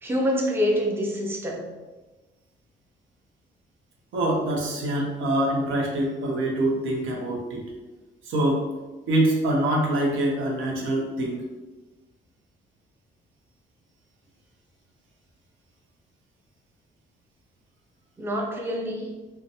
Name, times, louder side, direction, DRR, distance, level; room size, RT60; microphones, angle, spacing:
voice 1, 0.0-1.7 18.2-19.1, equal, 10° right, 0 dB, 0.4 m, -26 dB
voice 2, 4.1-7.6 8.2-8.7 9.1-11.4, right 1 dB, 80° right, -1 dB, 0.6 m, -24 dB
2.5 x 2.1 x 2.7 m, 1.2 s
cardioid pair, 90°, 20 cm